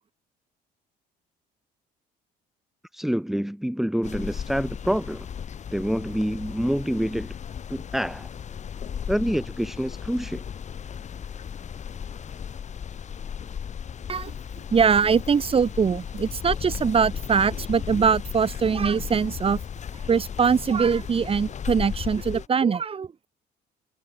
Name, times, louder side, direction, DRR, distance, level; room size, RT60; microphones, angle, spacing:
voice 1, 2.9-5.3 5.7-7.3 7.7-8.3 9.1-10.4, equal, ahead, 2.8 m, -27 dB
sound 1, 4.0-22.5, left 8 dB, 45° left, 6.8 m, -35 dB
voice 2, 14.7-19.6 20.1-23.1, right 6 dB, 35° right, 2.8 m, -22 dB
cardioid pair, 110°, 17 cm